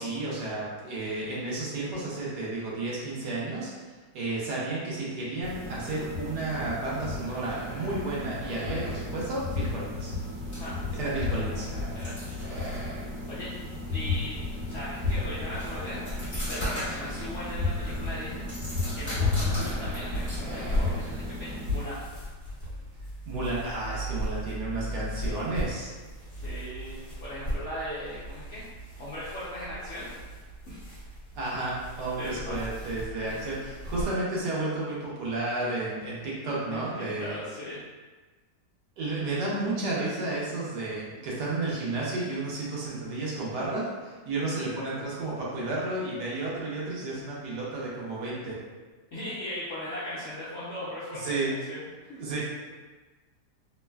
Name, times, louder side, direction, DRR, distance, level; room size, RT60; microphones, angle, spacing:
voice 1, 0.0-10.1 11.0-11.7 23.3-25.9 31.4-37.4 39.0-48.6 51.1-51.5 52.2-52.4, right 2 dB, 80° right, -6 dB, 1.3 m, -32 dB
sound 1, 5.4-21.8, left 3 dB, 60° right, 1.3 m, -33 dB
sound 2, 10.4-21.4, equal, 15° left, 0.9 m, -40 dB
voice 2, 10.5-11.1 11.9-12.6 12.9-13.5 13.9-14.4 14.7-16.0 16.4-18.5 18.9-22.0 26.3-28.6 29.0-30.1 30.7-30.8 32.2-32.6 33.2-33.4 36.7-37.8 49.1-51.8 52.1-52.2, left 1 dB, 65° left, -10 dB, 0.7 m, -38 dB
sound 3, 15.0-34.1, equal, 35° left, 1.5 m, -37 dB
3.2 x 2.1 x 2.2 m, 1.3 s
omnidirectional pair, 1.8 m